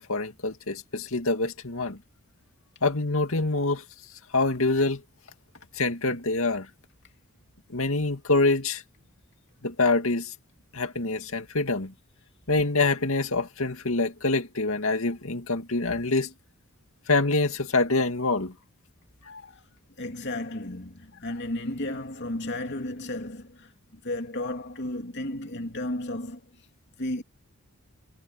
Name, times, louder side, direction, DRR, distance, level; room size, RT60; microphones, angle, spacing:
voice 1, 0.0-2.0 2.8-3.8 4.3-5.0 5.8-6.7 7.7-8.8 9.6-10.3 10.7-11.9 12.5-16.3 17.1-18.5 19.3-19.4, left 3 dB, 65° left, 2.3 m, -25 dB
voice 2, 20.0-23.7 24.0-26.4 27.0-27.2, left 1 dB, 50° left, 2.9 m, -33 dB
head